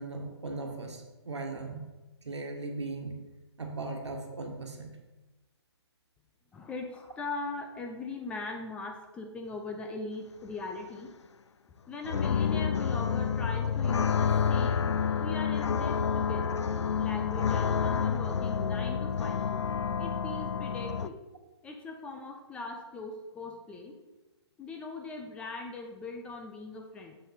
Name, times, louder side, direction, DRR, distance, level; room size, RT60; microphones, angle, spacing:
voice 1, 0.0-1.9 2.2-3.2 3.6-5.0, right 3 dB, 75° right, 3 dB, 1.7 m, -38 dB
voice 2, 6.5-11.1 11.7-16.7 17.0-19.4 20.0-21.2 21.6-24.0 24.6-27.2, left 3 dB, 10° left, 3 dB, 0.4 m, -40 dB
sound 1, 12.0-21.1, left 7 dB, 80° left, 0.4 m, -29 dB
7.4 x 6.7 x 4.3 m, 1.1 s
figure-of-eight pair, 145°, 15 cm